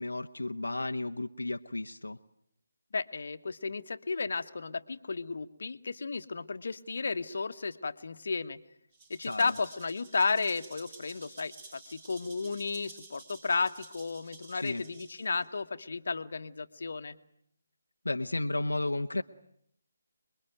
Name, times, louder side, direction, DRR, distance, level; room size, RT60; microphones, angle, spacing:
voice 1, 0.0-2.2 9.2-9.5 14.5-14.8 18.0-19.2, left 2 dB, 85° left, 5 dB, 1.0 m, -33 dB
voice 2, 2.9-8.6 9.1-17.2, left 4 dB, 60° left, 9 dB, 1.4 m, -33 dB
Rattle (instrument), 8.9-15.5, right 3 dB, 30° right, 7.4 m, -52 dB
27.0 x 22.0 x 9.2 m, 0.71 s
figure-of-eight pair, 155°, 0 cm